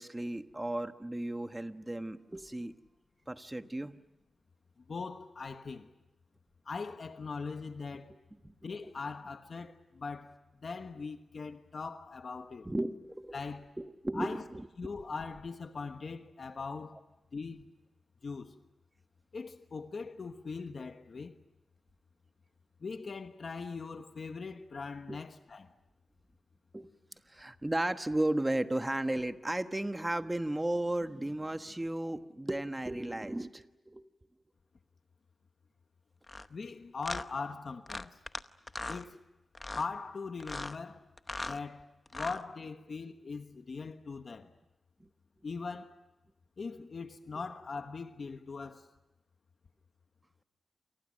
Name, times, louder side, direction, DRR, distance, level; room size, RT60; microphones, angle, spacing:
voice 1, 0.0-2.7 3.3-3.9 8.4-8.5 8.8-8.9 12.6-13.4 13.8-15.0 25.1-25.2 26.7-26.9 27.3-34.1 37.4-37.5 45.0-45.1, right 1 dB, 15° right, 1.2 m, -34 dB
voice 2, 4.8-5.9 6.6-8.1 8.6-12.7 13.3-13.7 14.1-14.4 14.8-17.0 17.3-17.7 18.2-18.6 19.3-21.4 22.8-25.7 36.5-38.2 38.9-39.2 39.7-41.1 41.4-44.5 45.4-46.0 46.6-48.9, left 4 dB, 50° left, 1.3 m, -41 dB
sound 1, 36.3-36.5 37.0-37.2 37.9-38.4 38.7-39.0 39.5-39.9 40.4-40.8 41.2-41.6 42.1-42.4, left 2 dB, 25° left, 0.9 m, -39 dB
28.5 x 28.5 x 6.4 m
wide cardioid pair, 125°, 0 cm